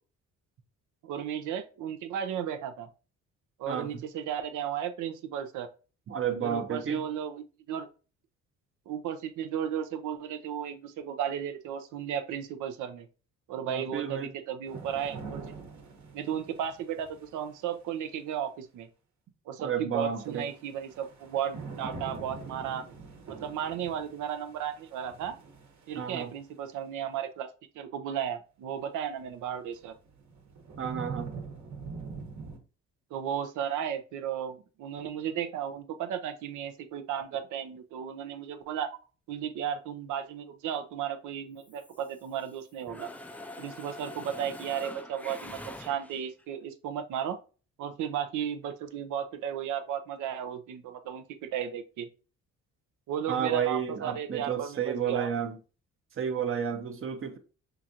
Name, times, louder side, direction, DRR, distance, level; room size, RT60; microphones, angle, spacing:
voice 1, 1.0-2.9 3.6-5.7 6.4-7.9 8.9-13.1 13.5-15.5 16.1-18.9 19.5-22.8 23.3-25.3 25.9-27.5 27.7-30.0 33.1-38.9 39.3-43.1 43.6-47.4 47.8-52.1 53.1-55.3, right 9 dB, 85° right, 0.6 m, -34 dB
voice 2, 6.1-7.1 13.7-14.3 19.6-20.5 25.9-26.3 30.8-31.3 53.3-55.6 56.2-57.4, right 8 dB, 45° right, 0.8 m, -31 dB
sound 1, 14.6-17.8 20.1-26.4 29.1-29.2 29.8-32.6, right 4 dB, 65° right, 1.2 m, -44 dB
Mechanisms, 41.6-42.6 42.9-46.4, left 1 dB, 5° left, 0.3 m, -44 dB
5.7 x 2.5 x 2.8 m
cardioid pair, 90°, 30 cm